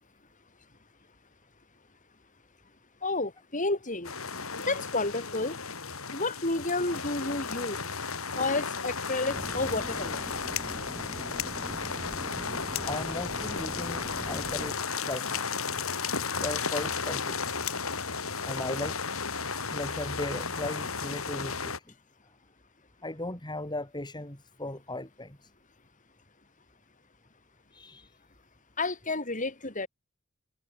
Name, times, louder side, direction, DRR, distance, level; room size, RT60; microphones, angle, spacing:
voice 1, 3.0-4.1 4.6-5.6 6.1-7.8 8.4-10.2 28.8-29.9, left 2 dB, 35° left, 4.5 m, -31 dB
sound 1, 4.0-21.8, left 5 dB, 80° left, 5.1 m, -34 dB
sound 2, 9.3-14.7, equal, 10° right, 6.3 m, -42 dB
voice 2, 12.9-14.8 15.0-15.5 16.4-17.5 18.4-19.0 19.4-21.7 23.0-25.5 27.7-28.1, left 1 dB, 20° left, 5.2 m, -37 dB
head